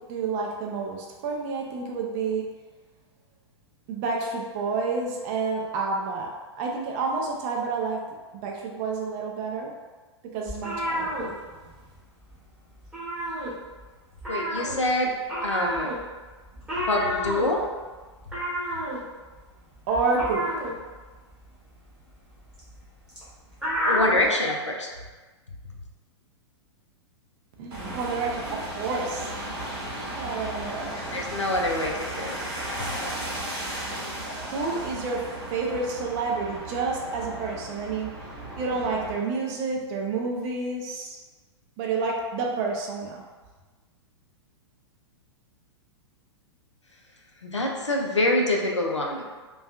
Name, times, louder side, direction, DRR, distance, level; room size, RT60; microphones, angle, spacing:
voice 1, 0.1-2.4 3.9-6.3 6.6-8.0 8.4-9.7 10.3-11.4 19.9-20.7 27.6-29.3 29.9-31.2 34.4-35.2 35.5-38.1 38.5-41.2 41.8-43.2, right 4 dB, 30° right, -1 dB, 0.4 m, -29 dB
sound 1, 10.5-12.0 12.2-12.5 12.8-13.9 14.2-24.3, equal, 5° right, 0.8 m, -30 dB
voice 2, 14.3-15.1 15.4-15.9 16.9-17.7 23.8-24.9 30.9-32.4 32.7-32.9 47.4-49.2, left 1 dB, 85° left, 0 dB, 0.4 m, -25 dB
sound 2, 27.7-39.2, right 1 dB, 50° right, 0.8 m, -35 dB
2.5 x 2.3 x 2.3 m, 1.3 s
figure-of-eight pair, 105°, 15 cm